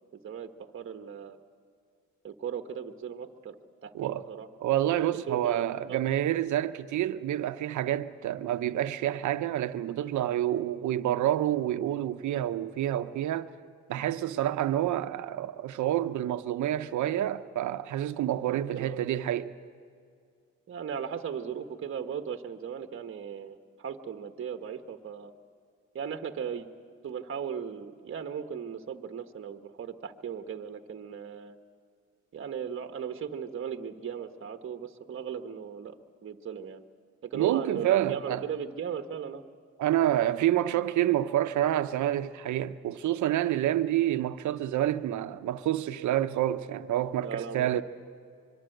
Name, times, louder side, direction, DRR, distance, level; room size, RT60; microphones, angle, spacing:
voice 1, 0.2-1.4 2.2-3.5 3.8-4.5 5.0-6.0 18.5-19.0 20.7-25.3 25.9-26.7 27.0-31.6 32.3-35.9 36.2-36.8 37.2-39.4 47.2-47.8, right 7 dB, 45° right, 1.3 m, -37 dB
voice 2, 3.9-4.3 4.6-13.5 13.9-19.5 37.3-38.4 39.8-47.8, right 12 dB, 75° right, 0.9 m, -28 dB
25.0 x 23.0 x 7.9 m
cardioid pair, 90°, 30 cm